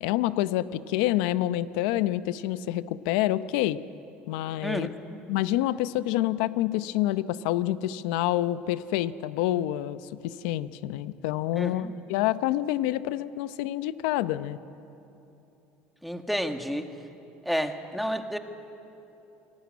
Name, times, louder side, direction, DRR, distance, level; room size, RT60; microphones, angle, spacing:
voice 1, 0.0-3.8 4.3-4.9 5.3-14.6, left 14 dB, 85° left, 15 dB, 0.8 m, -27 dB
voice 2, 11.6-11.9 16.0-16.9 17.4-18.4, equal, ahead, 6 dB, 1.7 m, -30 dB
26.0 x 18.5 x 9.6 m, 3.0 s
supercardioid pair, 100°, 4 cm